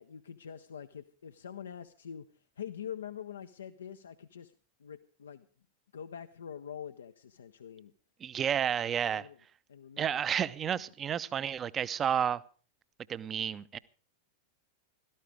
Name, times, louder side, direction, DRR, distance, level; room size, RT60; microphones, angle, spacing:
voice 1, 0.0-2.2 2.6-4.5 4.8-5.5 5.9-7.9 9.1-9.4 9.7-10.5, left 8 dB, 70° left, 0.6 m, -45 dB
voice 2, 8.2-9.3 10.0-12.4 13.1-13.8, right 8 dB, 25° right, 0.6 m, -31 dB
16.5 x 13.5 x 4.9 m
figure-of-eight pair, 90°, 0 cm